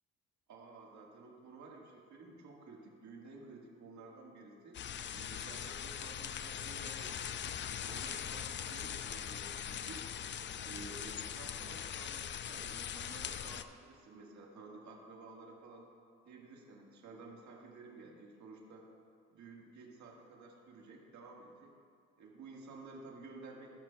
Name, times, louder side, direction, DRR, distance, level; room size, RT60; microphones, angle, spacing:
voice 1, 0.5-4.8 5.1-7.4 7.8-10.0 10.6-15.9 16.2-18.9 19.3-21.7 22.2-23.7, right 3 dB, 70° right, -1 dB, 1.6 m, -53 dB
sound 1, 4.7-13.6, left 9 dB, 40° left, 0.4 m, -41 dB
17.0 x 6.8 x 2.3 m, 2.2 s
cardioid pair, 90°, 30 cm